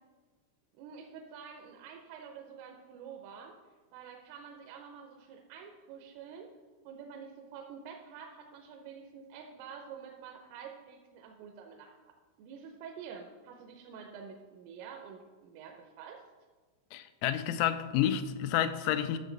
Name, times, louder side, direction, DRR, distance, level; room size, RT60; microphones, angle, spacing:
voice 1, 0.7-3.5 3.9-6.5 6.8-12.0 12.4-16.2, right 6 dB, 85° right, 3.3 m, -48 dB
voice 2, 16.9-19.2, left 11 dB, 85° left, 3.2 m, -30 dB
12.0 x 6.6 x 3.9 m
omnidirectional pair, 5.8 m